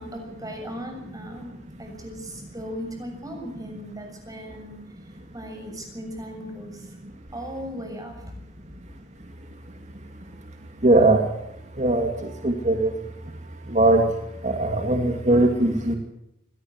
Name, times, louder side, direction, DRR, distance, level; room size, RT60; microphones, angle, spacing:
voice 1, 0.0-7.0 7.3-8.4, equal, 20° right, 4 dB, 7.0 m, -38 dB
voice 2, 10.8-11.2 11.8-12.9 13.7-14.0 14.4-15.9, right 2 dB, 35° right, 4 dB, 2.6 m, -20 dB
23.5 x 18.0 x 7.9 m, 0.81 s
head